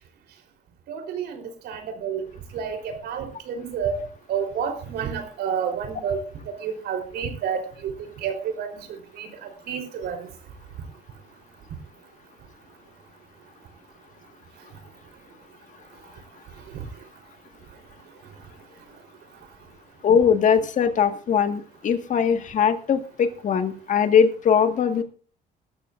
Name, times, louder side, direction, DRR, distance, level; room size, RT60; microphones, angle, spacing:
voice 1, 0.9-2.2 2.5-4.0 4.3-6.2 6.6-7.9 8.2-9.3 9.7-10.2 16.7-16.8, right 7 dB, 75° right, 6 dB, 3.9 m, -29 dB
voice 2, 20.0-25.0, left 7 dB, 50° left, 8 dB, 1.7 m, -21 dB
20.5 x 13.0 x 2.6 m, 0.37 s
cardioid pair, 110°, 17 cm